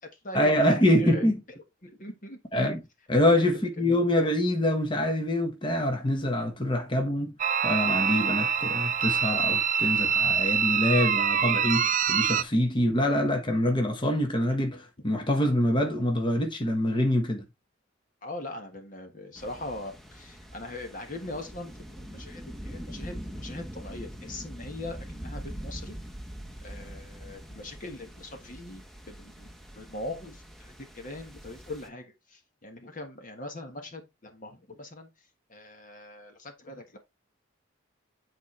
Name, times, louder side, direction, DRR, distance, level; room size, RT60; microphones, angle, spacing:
voice 1, 0.3-1.4 2.5-2.8 3.1-7.3 7.6-17.5, left 1 dB, 25° left, 1.3 m, -25 dB
voice 2, 1.0-1.3 1.8-2.4 3.2-3.5 18.2-26.0 26.6-35.1 35.5-37.0, left 2 dB, 40° left, 1.3 m, -41 dB
sound 1, 7.4-12.4, right 7 dB, 40° right, 0.4 m, -25 dB
sound 2, 19.4-31.9, equal, ahead, 1.0 m, -43 dB
9.2 x 4.5 x 3.2 m
head